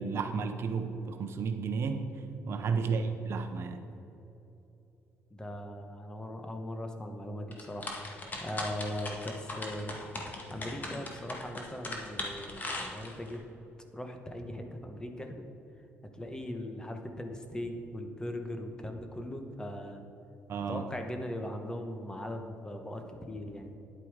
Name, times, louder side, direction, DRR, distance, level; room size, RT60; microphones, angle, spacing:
voice 1, 0.0-2.0 2.5-3.8 20.5-20.8, right 5 dB, 60° right, 7 dB, 0.8 m, -32 dB
voice 2, 5.3-7.9 8.4-9.9 10.5-13.4 13.9-15.4 16.1-20.0 20.7-23.8, left 1 dB, 15° left, 5 dB, 1.1 m, -39 dB
sound 1, 7.5-13.3, left 2 dB, 35° left, 1.7 m, -39 dB
10.0 x 8.4 x 4.9 m, 3.0 s
cardioid pair, 110°, 5 cm